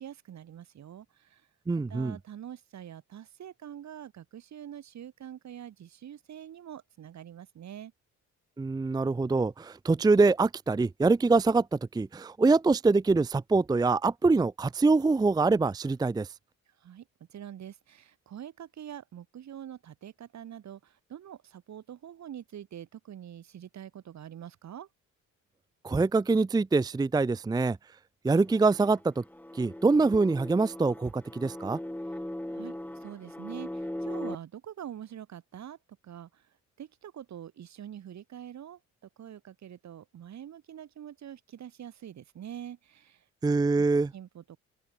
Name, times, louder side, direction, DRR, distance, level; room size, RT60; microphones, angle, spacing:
voice 1, 0.0-1.5 1.9-7.9 16.7-24.9 32.5-35.8 36.0-36.5 36.8-43.2 44.1-44.6, right 10 dB, 65° right, 5.7 m, -45 dB
voice 2, 1.7-2.2 8.6-16.3 25.8-27.8 28.2-29.2 29.5-31.8 43.4-44.1, right 3 dB, 15° right, 0.5 m, -24 dB
sound 1, 28.4-34.3, left 1 dB, 5° left, 5.5 m, -39 dB
open air
cardioid pair, 90°, 30 cm